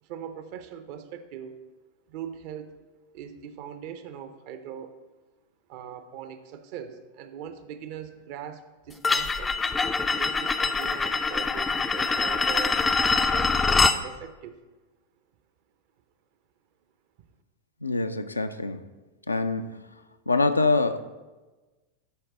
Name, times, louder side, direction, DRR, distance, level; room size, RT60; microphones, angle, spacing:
voice 1, 0.0-1.6 2.1-2.8 3.1-4.9 5.7-9.5 10.1-14.6, right 8 dB, 45° right, 10 dB, 0.6 m, -41 dB
sound 1, 9.0-14.0, left 4 dB, 15° left, 0.4 m, -24 dB
voice 2, 17.8-18.9 19.3-19.8 20.3-21.0, left 3 dB, 80° left, 9 dB, 0.4 m, -25 dB
11.0 x 4.5 x 3.8 m, 1.2 s
figure-of-eight pair, 90°, 0 cm